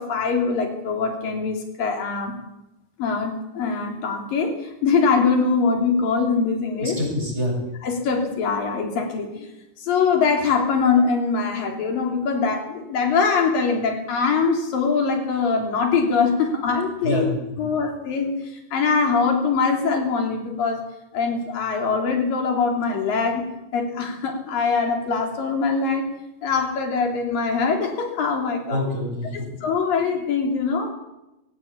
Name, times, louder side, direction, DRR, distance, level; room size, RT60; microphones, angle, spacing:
voice 1, 0.0-2.3 3.0-7.0 7.8-9.5 9.8-17.3 17.6-18.4 18.7-20.8 21.1-23.4 23.7-26.1 26.4-28.8 29.6-30.9, left 5 dB, 85° left, 3 dB, 5.0 m, -22 dB
voice 2, 6.8-7.6 17.0-17.6 28.7-29.5, left 1 dB, 15° right, 0 dB, 7.8 m, -26 dB
21.5 x 18.0 x 8.6 m, 0.91 s
omnidirectional pair, 3.9 m